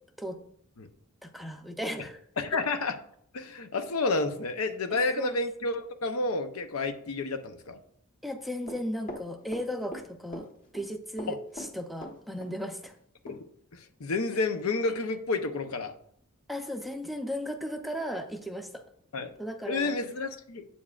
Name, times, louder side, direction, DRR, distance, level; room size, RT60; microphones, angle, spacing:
voice 1, 1.2-2.2 5.2-5.4 8.2-10.5 10.7-12.9 16.5-18.8 19.4-19.9, equal, ahead, 5 dB, 0.5 m, -36 dB
voice 2, 2.4-3.0 3.3-7.8 11.3-11.4 13.2-13.4 13.7-16.0 19.1-19.3 19.7-20.7, left 3 dB, 80° left, 8 dB, 0.7 m, -30 dB
Run, 8.7-10.0 10.3-10.9 11.2-12.5 12.8-12.9 13.3-13.4, equal, 40° left, 1.2 m, -41 dB
8.4 x 7.1 x 2.4 m, 0.65 s
head